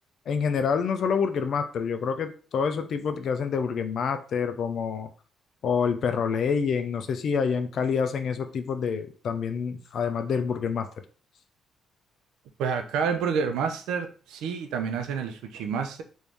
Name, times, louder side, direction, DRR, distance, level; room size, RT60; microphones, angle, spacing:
voice 1, 0.3-5.1 5.6-10.9, left 6 dB, 60° left, 9 dB, 0.5 m, -27 dB
voice 2, 12.6-16.0, right 6 dB, 90° right, 6 dB, 0.5 m, -29 dB
3.0 x 2.7 x 3.4 m, 0.39 s
cardioid pair, 90°, 0 cm